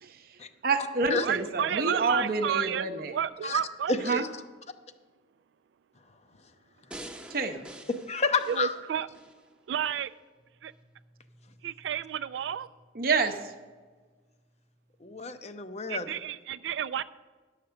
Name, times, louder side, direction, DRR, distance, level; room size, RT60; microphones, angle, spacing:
voice 1, 0.6-3.1 4.0-4.2 7.3-7.7 12.9-13.3, right 4 dB, 55° right, 6 dB, 0.7 m, -28 dB
voice 2, 1.2-4.2 8.5-9.1 9.7-10.1 10.6-10.7 11.6-12.7 15.9-17.0, right 9 dB, 80° right, 15 dB, 0.3 m, -31 dB
voice 3, 3.9-4.2 8.1-8.8 15.0-16.1, left 4 dB, 35° left, 9 dB, 0.6 m, -30 dB
sound 1, 6.9-9.4 9.9-10.0, right 1 dB, 5° right, 0.7 m, -46 dB
10.5 x 6.6 x 6.8 m, 1.4 s
head